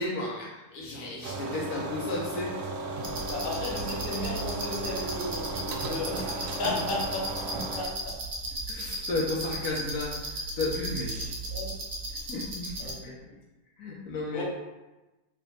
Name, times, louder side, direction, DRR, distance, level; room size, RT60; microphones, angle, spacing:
voice 1, 0.0-2.5 8.7-11.3 12.3-12.7 13.0-13.1 13.8-14.4, left 2 dB, 75° left, -4 dB, 1.0 m, -33 dB
sound 1, 1.2-7.8, right 2 dB, 85° right, 1.2 m, -35 dB
sound 2, 3.0-12.9, right 1 dB, 55° right, 1.0 m, -36 dB
voice 2, 3.3-7.3 7.8-8.2 11.1-11.7 12.1-12.3 12.8-13.1 14.3-14.4, left 2 dB, 40° left, -5 dB, 1.0 m, -35 dB
3.2 x 2.2 x 3.9 m, 1.1 s
omnidirectional pair, 1.7 m